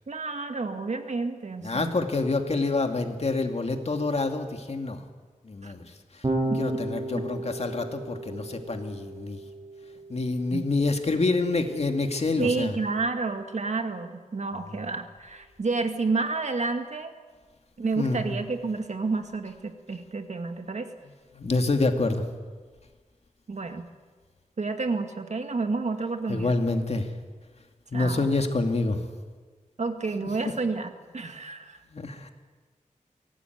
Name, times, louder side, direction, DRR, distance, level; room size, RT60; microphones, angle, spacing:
voice 1, 0.1-2.0 5.6-5.7 6.5-6.6 7.1-7.2 10.5-10.6 12.4-17.1 17.8-20.9 23.5-23.9 24.6-26.5 27.9-28.3 29.8-31.8, right 3 dB, 60° right, 6 dB, 2.1 m, -30 dB
voice 2, 1.6-5.0 5.4-9.4 10.1-12.8 14.7-14.8 18.0-18.4 21.3-22.2 26.3-27.1 27.9-29.0 30.2-30.5 31.9-32.3, left 3 dB, 50° left, 5 dB, 2.3 m, -27 dB
Electric guitar / Bass guitar, 6.2-12.6, right 2 dB, 35° right, 7.4 m, -35 dB
23.5 x 18.0 x 9.4 m, 1.5 s
wide cardioid pair, 105°, 13 cm